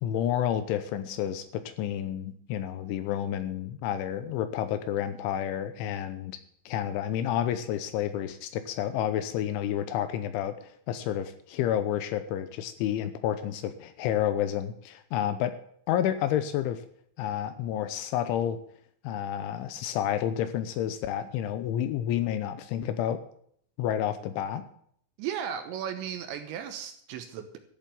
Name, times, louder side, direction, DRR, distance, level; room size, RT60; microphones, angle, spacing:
voice 1, 0.0-6.4 6.7-15.5 15.9-16.8 17.2-18.6 19.0-23.2 23.8-24.6, left 10 dB, 80° left, 11 dB, 3.0 m, -30 dB
voice 2, 25.2-27.6, right 9 dB, 75° right, 7 dB, 3.0 m, -35 dB
13.0 x 7.3 x 9.0 m, 0.66 s
omnidirectional pair, 5.9 m